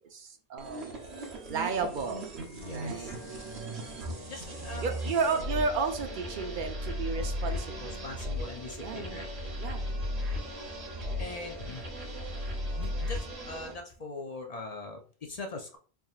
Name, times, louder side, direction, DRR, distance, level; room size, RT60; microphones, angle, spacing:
voice 1, 0.1-1.0 1.5-2.3 2.7-3.1 4.8-8.0 8.8-9.2 9.6-9.8, right 4 dB, 50° right, 6 dB, 0.7 m, -32 dB
sound 1, 0.6-13.8, left 1 dB, 65° right, 1.2 m, -37 dB
voice 2, 2.5-3.2 4.3-4.9 7.8-9.5 11.2-11.8 12.8-15.8, left 2 dB, 45° left, 4 dB, 0.5 m, -42 dB
sound 2, 2.6-13.7, right 1 dB, 30° right, 1.0 m, -46 dB
4.1 x 3.4 x 2.4 m, 0.40 s
omnidirectional pair, 1.2 m